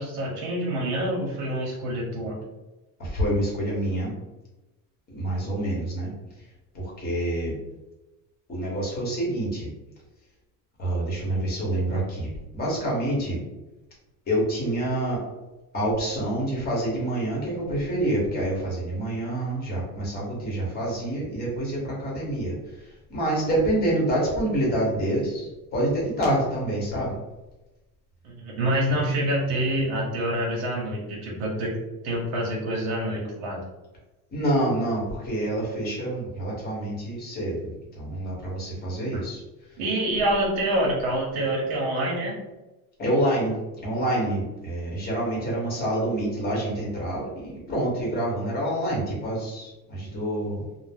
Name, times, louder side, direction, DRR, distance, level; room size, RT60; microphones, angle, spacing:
voice 1, 0.0-2.4 28.2-31.7 32.0-33.6 39.1-39.2 39.8-42.4, right 1 dB, 65° right, -2 dB, 0.9 m, -26 dB
voice 2, 3.0-4.1 5.1-6.1 6.7-7.5 8.5-9.7 10.8-13.4 14.3-15.2 15.7-27.2 34.3-39.4 43.0-50.7, right 1 dB, 25° left, -4 dB, 0.9 m, -27 dB
2.5 x 2.0 x 3.4 m, 1.0 s
cardioid pair, 175°, 40 cm